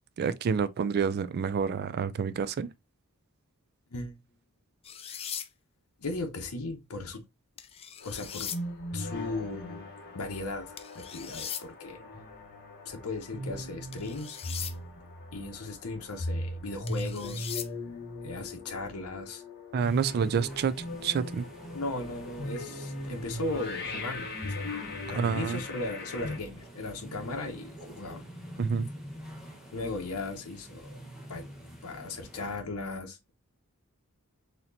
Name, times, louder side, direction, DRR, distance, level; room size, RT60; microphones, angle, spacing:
voice 1, 0.2-2.7 19.7-20.7 21.0-21.5 25.1-25.6 28.6-28.9, right 6 dB, 45° right, 0.3 m, -28 dB
sound 1, 4.8-5.5 7.6-8.6 10.8-11.6 13.9-14.7 16.9-17.7, left 9 dB, 25° left, 0.4 m, -39 dB
voice 2, 6.0-7.2 8.0-8.5 8.9-9.8 10.1-12.0 12.8-14.4 15.3-17.5 18.2-19.4 21.7-28.2 29.7-31.0 31.3-31.5 31.8-33.3, left 2 dB, 70° left, 0.9 m, -37 dB
sound 2, 8.0-26.4, left 1 dB, 45° left, 1.1 m, -39 dB
sound 3, 19.8-32.6, right 1 dB, ahead, 1.0 m, -47 dB
4.2 x 2.9 x 2.6 m
head